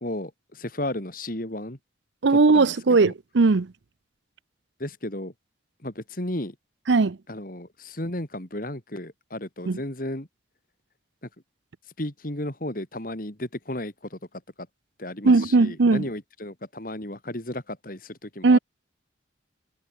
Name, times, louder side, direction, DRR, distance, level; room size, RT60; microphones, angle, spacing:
voice 1, 0.0-1.8 2.3-3.1 4.8-5.3 5.8-6.6 7.3-10.3 11.2-11.3 12.0-14.7 15.0-18.6, left 1 dB, 50° left, 3.0 m, -34 dB
voice 2, 2.2-3.7 6.9-7.2 9.7-9.8 15.2-16.0 18.4-18.6, right 3 dB, 75° right, 0.6 m, -18 dB
head